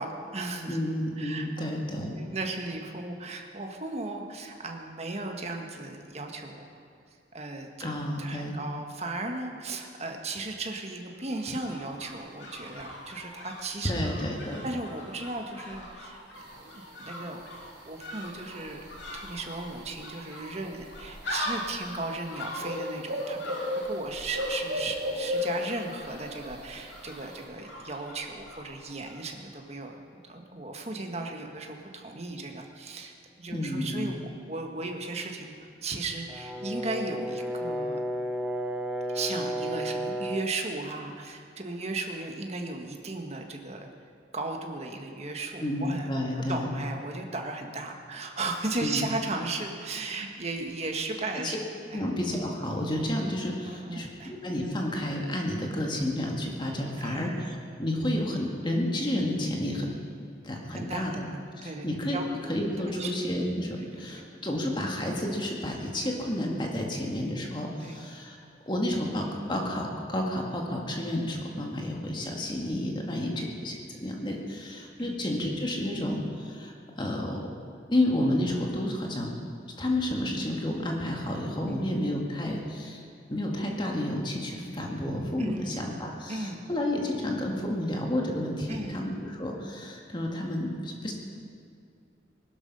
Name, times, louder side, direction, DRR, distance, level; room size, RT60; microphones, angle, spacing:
voice 1, 0.0-0.8 1.2-1.7 2.1-6.7 7.3-7.9 8.2-14.1 14.6-17.5 17.8-18.8 19.1-23.4 23.7-33.1 33.4-35.5 35.8-38.0 39.1-43.9 44.3-46.1 46.4-51.6 51.9-52.2 53.6-54.3 57.0-57.5 60.7-61.4 61.6-62.5 63.0-63.1 64.1-64.2 67.8-68.0 73.2-73.5 75.0-75.1 81.6-81.8 85.4-85.7 86.3-86.7 88.7-89.0, right 2 dB, 35° right, 3 dB, 1.5 m, -36 dB
voice 2, 0.7-2.1 7.8-8.5 13.8-14.6 33.5-34.1 45.6-46.7 48.8-49.1 51.4-51.6 51.9-60.0 60.4-61.2 61.6-62.2 62.5-68.4 68.7-77.4 77.9-79.3 79.8-83.0 83.3-91.1, left 1 dB, 25° left, 0 dB, 2.0 m, -31 dB
sound 1, 11.1-29.3 29.5-29.6, left 1 dB, 85° left, 2.4 m, -42 dB
sound 2, 16.4-27.4, left 1 dB, 80° right, 4.1 m, -36 dB
Brass instrument, 36.3-40.5, equal, 5° right, 0.9 m, -32 dB
20.0 x 12.5 x 5.5 m, 2.5 s
head